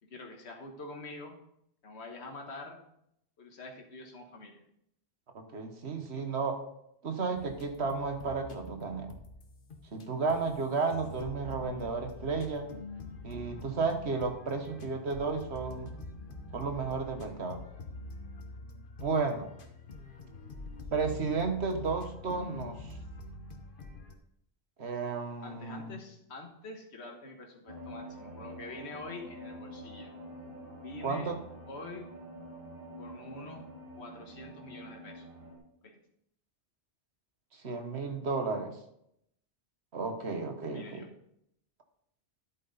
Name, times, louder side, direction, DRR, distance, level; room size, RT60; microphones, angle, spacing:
voice 1, 0.0-1.4 1.8-2.8 3.4-4.6 25.4-30.1 30.8-31.3 31.7-32.1 33.0-35.2 35.8-36.0 40.7-41.1, left 3 dB, 85° left, 2 dB, 1.6 m, -46 dB
voice 2, 5.3-6.6 7.0-9.1 9.9-12.7 13.2-15.9 16.5-17.6 19.0-19.5 20.9-23.0 24.8-25.9 31.0-31.4 37.6-38.8 39.9-41.0, right 4 dB, 90° right, 6 dB, 1.5 m, -33 dB
sound 1, 7.4-10.0 10.3-10.6 10.9-24.1, left 2 dB, 55° left, 1.2 m, -45 dB
sound 2, 27.7-35.6, equal, 60° right, 3.1 m, -47 dB
11.0 x 8.3 x 4.0 m, 0.75 s
omnidirectional pair, 1.1 m